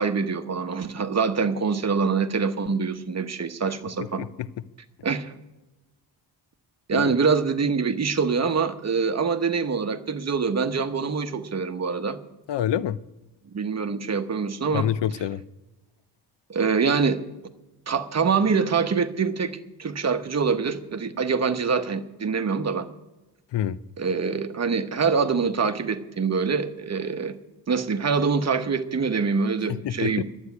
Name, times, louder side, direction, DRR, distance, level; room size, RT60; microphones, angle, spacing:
voice 1, 0.0-4.2 5.0-5.3 6.9-12.2 13.5-14.9 16.5-17.2 17.9-22.9 24.0-27.3 27.7-30.2, right 5 dB, 40° right, 9 dB, 1.1 m, -25 dB
voice 2, 12.5-13.0 14.7-15.4 23.5-23.8 29.8-30.2, left 10 dB, 85° left, 18 dB, 0.6 m, -26 dB
11.5 x 8.3 x 9.5 m, 1.1 s
wide cardioid pair, 115°, 42 cm